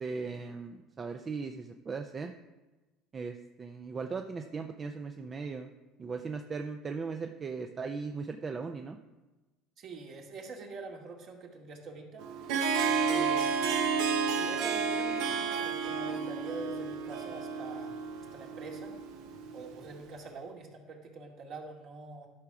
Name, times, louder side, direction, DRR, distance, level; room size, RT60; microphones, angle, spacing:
voice 1, 0.0-2.3 3.1-5.7 6.0-9.0, right 4 dB, 30° right, 5 dB, 0.6 m, -38 dB
voice 2, 9.8-12.5 12.9-13.6 14.3-17.9 18.3-18.9 19.5-22.3, right 3 dB, 55° right, 0 dB, 2.2 m, -45 dB
Harp, 12.2-19.9, right 5 dB, 75° right, 1.0 m, -31 dB
12.0 x 4.9 x 5.9 m, 1.1 s
supercardioid pair, 95°, 0 cm